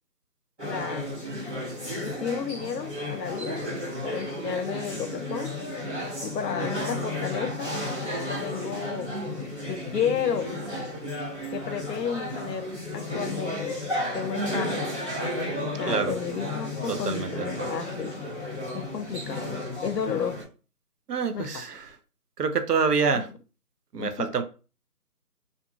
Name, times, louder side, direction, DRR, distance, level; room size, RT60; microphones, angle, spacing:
sound 1, 0.6-20.4, left 1 dB, 45° right, 1.2 m, -33 dB
voice 1, 0.7-1.0 2.0-3.6 4.0-5.5 6.2-7.7 8.3-9.1 9.7-10.5 11.5-13.7 14.1-14.9 15.8-18.1 18.7-19.5 19.8-20.4 21.3-21.6 23.1-23.2 23.9-24.3, left 7 dB, 85° left, 0.6 m, -32 dB
voice 2, 17.1-17.5 21.1-21.8 22.4-23.3 23.9-24.4, right 5 dB, 75° right, 0.6 m, -26 dB
2.6 x 2.4 x 2.3 m
figure-of-eight pair, 175°, 48 cm